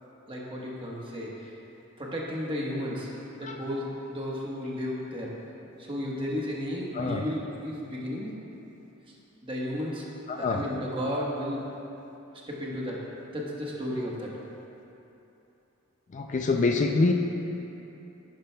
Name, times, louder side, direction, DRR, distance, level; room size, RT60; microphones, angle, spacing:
voice 1, 0.3-1.5 2.0-3.1 3.4-5.3 5.8-8.4 9.4-10.0 10.4-11.6 12.5-13.0 13.3-14.3, equal, 25° right, -4 dB, 1.2 m, -33 dB
voice 2, 10.3-10.6 16.1-17.1, left 3 dB, 35° left, 3 dB, 0.4 m, -25 dB
10.5 x 10.0 x 2.2 m, 2.9 s
head